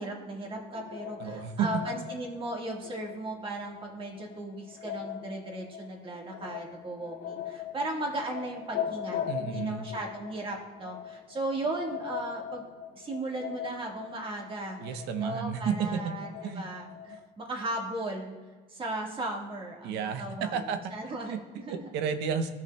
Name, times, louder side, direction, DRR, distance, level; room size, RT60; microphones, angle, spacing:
voice 1, 0.0-12.6 12.9-18.3 18.7-20.6 20.9-21.9, right 2 dB, 30° right, 0 dB, 1.6 m, -36 dB
sound 1, 0.6-17.3, left 9 dB, 65° left, 0.5 m, -40 dB
voice 2, 1.2-1.8 9.3-9.9 14.8-16.1 16.4-16.7 17.1-17.2 19.8-20.9 21.3-22.5, right 7 dB, 90° right, 8 dB, 0.7 m, -32 dB
13.5 x 5.9 x 2.2 m, 1.4 s
cardioid pair, 110°, 17 cm